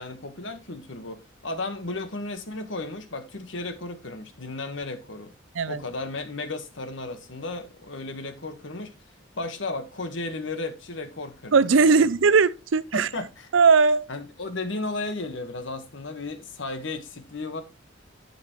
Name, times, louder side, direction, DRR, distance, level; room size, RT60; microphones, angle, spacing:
voice 1, 0.0-5.3 5.7-8.9 9.3-11.6 11.8-12.1 12.9-13.5 14.1-17.6, left 2 dB, 70° left, 1.4 m, -34 dB
voice 2, 11.5-13.1 13.5-14.1, right 5 dB, 75° right, 0.5 m, -19 dB
10.0 x 7.1 x 3.0 m
head